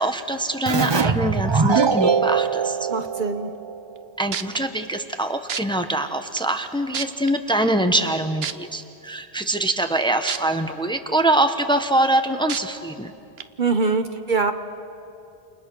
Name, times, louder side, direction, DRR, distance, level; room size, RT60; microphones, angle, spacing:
voice 1, 0.0-2.9 4.2-13.1, right 1 dB, 5° left, 7 dB, 1.1 m, -24 dB
Keyboard (musical), 0.7-4.0, right 5 dB, 30° right, 0.6 m, -22 dB
voice 2, 2.9-3.5 13.6-14.5, right 4 dB, 50° right, 8 dB, 1.3 m, -23 dB
sound 1, 4.0-4.1 4.3-4.6 5.5-5.6 6.4-6.5 6.9-7.3 8.4-8.5 10.3-10.4 10.9-11.0 12.5-12.6 13.4-13.5, right 8 dB, 80° right, 1.1 m, -28 dB
29.5 x 29.0 x 6.3 m, 2.6 s
omnidirectional pair, 1.0 m